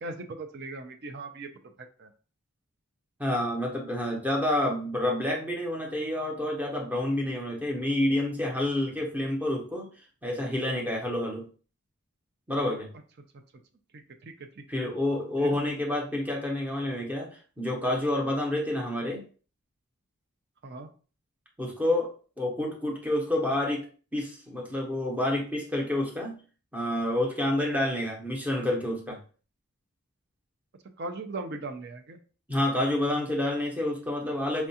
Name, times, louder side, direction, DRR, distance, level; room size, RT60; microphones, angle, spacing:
voice 1, 0.0-1.5 2.0-2.1 13.9-14.9 15.4-15.5 20.6-20.9 31.0-32.2, right 2 dB, 50° right, 6 dB, 0.5 m, -39 dB
voice 2, 3.2-9.9 10.2-11.5 12.5-12.9 14.7-19.2 21.6-23.9 24.1-26.4 26.7-29.2 32.5-34.7, left 1 dB, 5° right, -1 dB, 0.7 m, -28 dB
4.4 x 2.3 x 2.8 m, 0.39 s
head